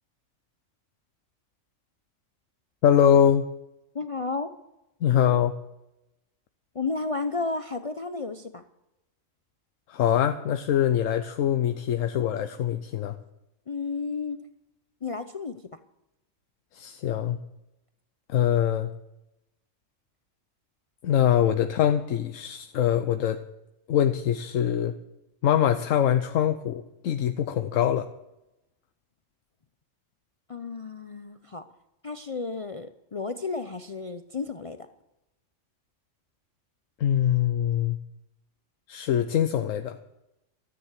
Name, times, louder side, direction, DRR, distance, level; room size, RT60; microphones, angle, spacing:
voice 1, 2.8-3.5 5.0-5.5 9.9-13.2 16.7-17.4 18.3-18.9 21.0-23.4 23.9-24.9 25.4-28.1 37.0-38.0 38.9-40.0, left 9 dB, 85° left, 9 dB, 1.1 m, -23 dB
voice 2, 3.9-4.5 6.7-8.6 13.7-14.4 15.0-15.6 30.5-31.6 32.0-34.9, left 4 dB, 40° left, 9 dB, 0.5 m, -32 dB
13.5 x 9.7 x 8.1 m, 0.90 s
omnidirectional pair, 1.3 m